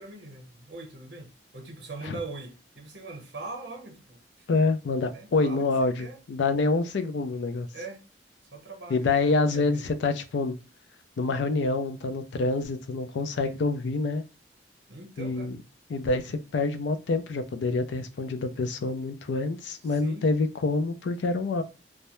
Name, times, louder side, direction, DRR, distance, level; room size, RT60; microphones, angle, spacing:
voice 1, 0.0-4.6 5.1-6.2 7.7-8.0 8.5-9.9 14.9-15.5 19.8-20.3, right 3 dB, 75° right, 0.8 m, -42 dB
voice 2, 4.5-7.7 8.9-10.6 11.2-14.2 15.2-15.6 15.9-21.6, left 3 dB, 80° left, 0.4 m, -27 dB
2.2 x 2.0 x 2.9 m
head